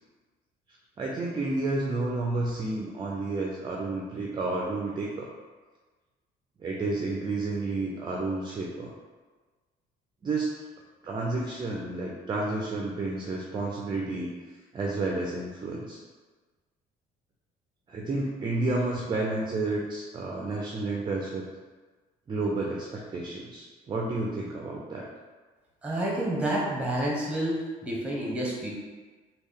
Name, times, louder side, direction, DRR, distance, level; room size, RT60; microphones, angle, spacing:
voice 1, 1.0-5.3 6.6-8.9 10.2-10.5 11.0-14.3 14.7-16.0 17.9-21.4 22.3-25.1, right 2 dB, 25° right, -2 dB, 0.4 m, -31 dB
voice 2, 25.8-28.7, right 1 dB, 5° right, -4 dB, 0.9 m, -29 dB
3.2 x 2.3 x 3.6 m, 1.4 s
cardioid pair, 110°, 17 cm